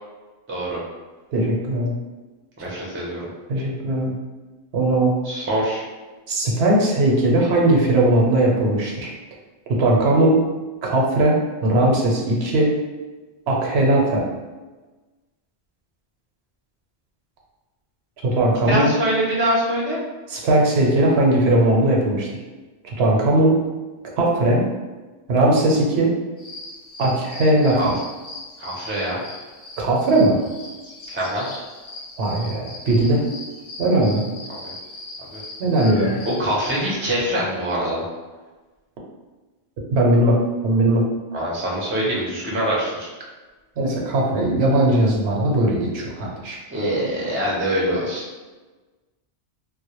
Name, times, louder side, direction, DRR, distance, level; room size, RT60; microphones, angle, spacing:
voice 1, 0.5-0.8 2.6-3.3 5.2-5.8 18.7-20.0 27.7-27.9 28.6-29.2 31.1-31.5 34.5-34.7 35.3-35.4 36.2-38.0 41.3-43.1 46.7-48.2, right 1 dB, 20° right, -4 dB, 0.3 m, -24 dB
voice 2, 1.3-1.9 3.5-4.1 4.7-5.1 6.3-9.1 9.8-10.4 10.8-12.7 13.5-14.2 18.2-18.9 20.3-22.3 22.8-23.5 24.2-24.6 25.3-26.1 27.0-27.9 29.8-30.4 32.2-33.2 33.8-34.3 35.6-36.1 39.9-40.4 40.6-41.0 43.8-46.6, right 1 dB, 85° right, -2 dB, 0.9 m, -18 dB
sound 1, 26.4-36.9, left 2 dB, 55° left, 0.7 m, -39 dB
2.1 x 2.1 x 2.9 m, 1.2 s
omnidirectional pair, 1.1 m